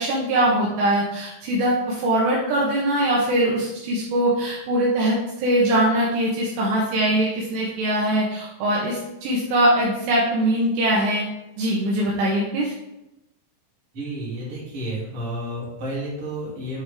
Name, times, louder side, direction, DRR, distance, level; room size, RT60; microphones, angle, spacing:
voice 1, 0.0-11.3 11.6-12.7, right 1 dB, 75° right, -5 dB, 3.0 m, -22 dB
voice 2, 13.9-16.8, right 1 dB, 35° right, -7 dB, 2.8 m, -31 dB
9.9 x 4.3 x 3.4 m, 0.90 s
omnidirectional pair, 5.5 m